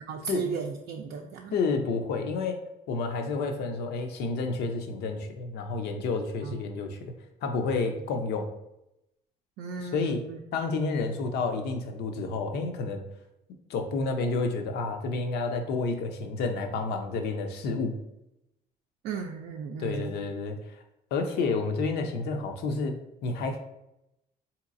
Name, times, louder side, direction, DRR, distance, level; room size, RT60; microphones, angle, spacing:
voice 1, 0.1-1.6 6.4-6.6 9.6-10.4 19.0-20.2, right 6 dB, 75° right, 1 dB, 0.4 m, -35 dB
voice 2, 1.5-2.6 2.9-7.1 7.4-8.5 9.8-10.2 10.5-13.0 13.7-18.0 19.8-20.8 21.1-23.6, left 3 dB, 75° left, 5 dB, 0.6 m, -30 dB
3.9 x 2.9 x 2.5 m, 0.87 s
cardioid pair, 110°, 17 cm